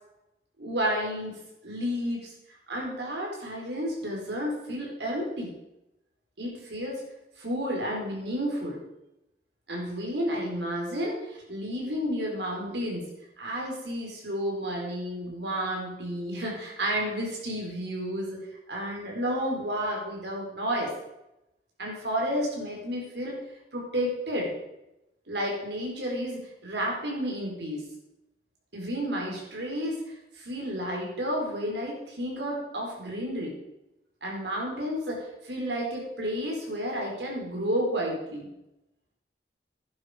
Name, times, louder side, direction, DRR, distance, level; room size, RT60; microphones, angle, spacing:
voice 1, 0.6-2.3 2.7-5.5 6.4-7.0 7.4-8.8 9.7-13.0 13.4-20.9 21.8-23.4 23.7-24.5 25.3-27.8 28.7-33.5 34.2-38.5, equal, 80° right, -1 dB, 4.6 m, -31 dB
11.5 x 11.0 x 5.2 m, 0.90 s
head